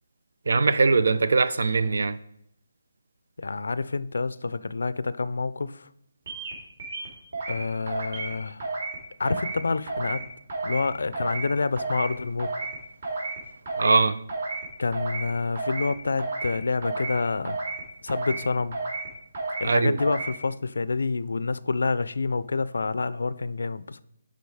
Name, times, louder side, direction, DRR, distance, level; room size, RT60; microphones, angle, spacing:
voice 1, 0.5-2.2 13.8-14.2 19.6-20.0, right 4 dB, 70° right, 0.5 m, -21 dB
voice 2, 3.4-5.9 7.5-8.6 9.2-10.2 10.6-12.5 14.8-17.6 18.0-18.8 19.6-24.0, left 4 dB, 80° left, 0.4 m, -28 dB
sound 1, 6.3-6.5 6.8-7.6 7.9-8.3 8.6-9.0 9.2-9.6 9.9-10.2 10.5-10.9 11.1-11.5 11.8-12.1 12.4-12.8 13.0-13.4 13.7-14.0 14.3-14.7 14.9-15.3 15.6-15.9 16.2-16.5 16.8-17.2 17.5-17.8 18.1-18.4 18.7-19.1 19.3-19.7 20.0-20.3, right 3 dB, 55° right, 3.0 m, -32 dB
10.5 x 3.9 x 4.8 m
hypercardioid pair, 170°, 0 cm